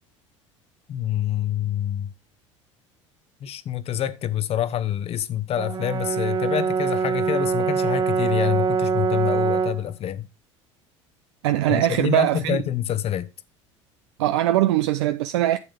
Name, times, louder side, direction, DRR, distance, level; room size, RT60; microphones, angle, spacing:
voice 1, 0.9-2.1 3.4-10.3 11.7-13.3, left 11 dB, 40° left, 1.0 m, -26 dB
Brass instrument, 5.6-9.9, right 6 dB, 25° right, 0.8 m, -23 dB
voice 2, 11.4-12.6 14.2-15.6, right 13 dB, 60° right, 0.6 m, -21 dB
11.0 x 8.5 x 3.5 m
figure-of-eight pair, 65°, 16 cm